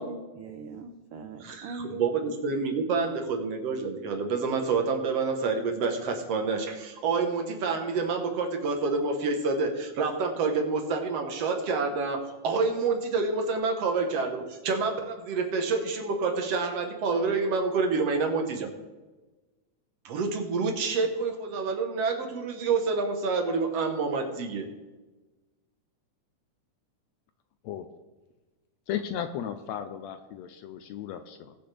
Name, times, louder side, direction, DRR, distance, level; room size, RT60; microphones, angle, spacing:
voice 1, 0.0-2.3, right 3 dB, 85° right, 6 dB, 1.2 m, -41 dB
voice 2, 1.4-18.7 20.1-24.7, right 4 dB, 60° right, 4 dB, 2.1 m, -28 dB
voice 3, 28.9-31.6, left 9 dB, 80° left, 9 dB, 1.7 m, -35 dB
20.5 x 7.0 x 3.4 m, 1.2 s
omnidirectional pair, 3.5 m